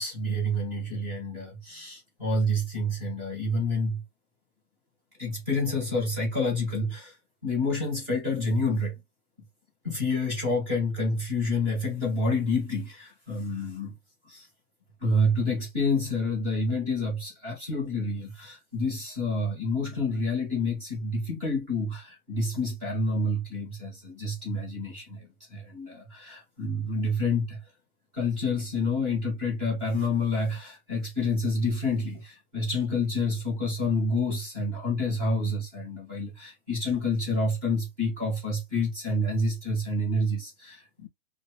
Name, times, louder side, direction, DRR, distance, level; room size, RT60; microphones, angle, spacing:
voice 1, 0.0-4.0 5.2-7.2 7.4-9.0 9.8-13.9 14.3-14.5 15.0-27.6 28.1-41.1, left 2 dB, 10° right, 1.4 m, -28 dB
2.8 x 2.5 x 3.1 m
hypercardioid pair, 175°, 46 cm